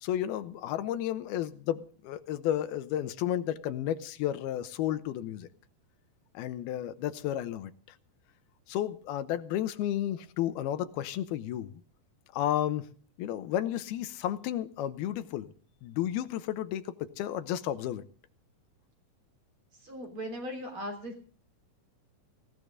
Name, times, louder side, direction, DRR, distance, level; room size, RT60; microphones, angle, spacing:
voice 1, 0.0-5.5 6.3-7.7 8.7-11.8 12.3-12.9 13.2-15.5 15.8-18.0, left 11 dB, 90° left, 2.9 m, -32 dB
voice 2, 19.8-21.2, equal, 35° right, 4.2 m, -38 dB
19.0 x 17.5 x 3.7 m
omnidirectional pair, 4.4 m